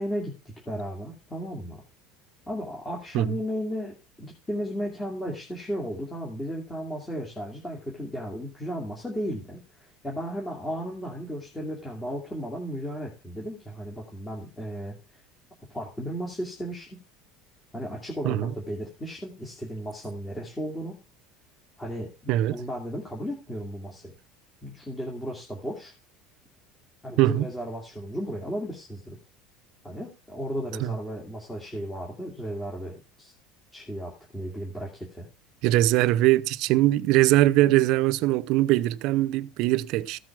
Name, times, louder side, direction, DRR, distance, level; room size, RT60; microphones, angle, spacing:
voice 1, 0.0-1.8 2.5-15.0 15.7-17.0 17.7-21.0 21.8-24.1 24.6-25.9 27.0-29.2 29.8-33.3 33.7-35.3, equal, 10° left, 2.6 m, -35 dB
voice 2, 35.6-40.2, right 16 dB, 50° right, 0.6 m, -21 dB
15.0 x 6.1 x 6.1 m
cardioid pair, 175°, 0 cm